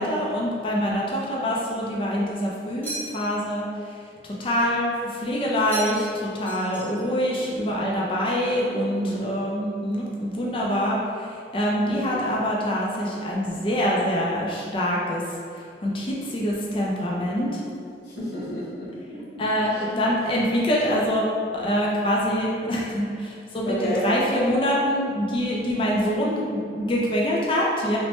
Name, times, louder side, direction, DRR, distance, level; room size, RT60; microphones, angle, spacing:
voice 1, 0.0-15.2 15.5-17.6 19.4-28.0, equal, 30° left, -3 dB, 0.3 m, -25 dB
sound 1, 2.8-3.5 5.7-6.2 6.5-7.2, right 1 dB, 10° left, 0.7 m, -36 dB
voice 2, 18.1-20.0 23.7-24.0, left 1 dB, 65° left, -8 dB, 0.9 m, -32 dB
3.0 x 2.1 x 2.9 m, 2.3 s
head